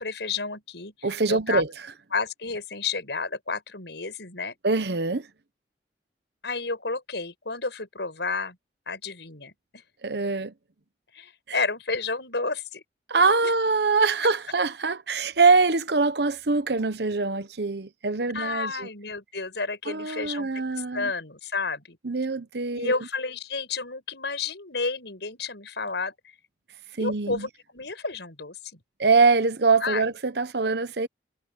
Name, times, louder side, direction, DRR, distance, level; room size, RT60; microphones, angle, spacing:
voice 1, 0.0-1.6 2.1-4.6 6.4-8.6 8.9-9.5 11.1-12.8 18.3-20.6 20.9-22.0 22.7-26.1 27.0-28.6 29.8-30.1, left 4 dB, 75° left, 5.5 m, -31 dB
voice 2, 1.0-1.7 4.6-5.3 10.0-10.5 11.5-11.6 13.1-18.9 19.9-21.1 22.0-23.0 27.0-27.5 29.0-31.1, right 4 dB, 65° right, 1.0 m, -23 dB
head